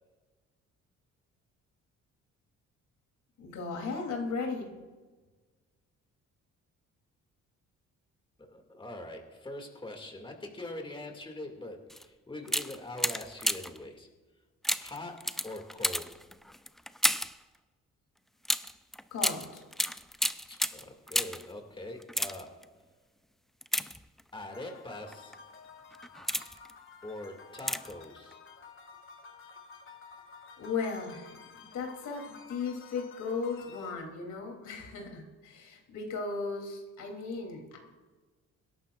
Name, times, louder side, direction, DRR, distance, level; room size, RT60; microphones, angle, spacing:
voice 1, 3.4-4.7 19.1-19.6 30.6-31.4 31.7-37.8, left 4 dB, 75° left, 1 dB, 3.2 m, -36 dB
voice 2, 8.4-14.1 14.8-16.3 20.5-22.9 24.3-25.5 27.0-28.4, left 1 dB, 15° left, 3 dB, 2.3 m, -43 dB
sound 1, 11.9-12.1 12.4-13.8 14.6-17.4 18.4-21.5 22.0-22.6 23.6-24.4 25.1-25.4 25.9-26.7 27.6-28.0 28.3-28.4, equal, ahead, 0.5 m, -32 dB
sound 2, 24.5-33.9, left 5 dB, 40° left, 2.0 m, -52 dB
25.0 x 11.5 x 2.5 m, 1.3 s
cardioid pair, 90°, 30 cm